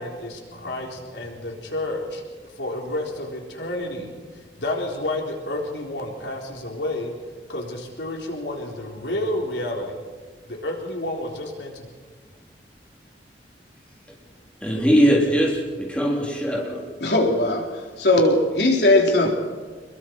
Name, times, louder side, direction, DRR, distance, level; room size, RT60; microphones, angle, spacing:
voice 1, 0.0-2.2 2.6-7.1 7.5-10.0 10.5-11.9, left 1 dB, 90° left, 0 dB, 4.1 m, -30 dB
voice 2, 14.6-16.8, equal, 5° left, -3 dB, 3.7 m, -20 dB
voice 3, 17.0-17.7 18.0-19.3, left 2 dB, 65° left, 0 dB, 4.0 m, -18 dB
27.0 x 22.0 x 4.7 m, 1.5 s
head